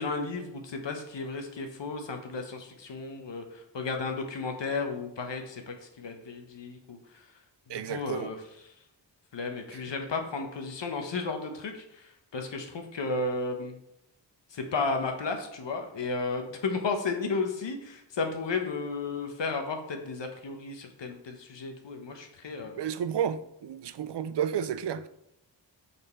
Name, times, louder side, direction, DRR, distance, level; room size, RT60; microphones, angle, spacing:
voice 1, 0.0-7.3 7.7-8.4 8.6-8.7 9.3-13.8 14.5-22.8, left 4 dB, 75° left, 1.0 m, -33 dB
voice 2, 7.7-8.3 22.8-25.1, right 8 dB, 65° right, 0.5 m, -31 dB
5.2 x 4.3 x 4.3 m
cardioid pair, 65°, 44 cm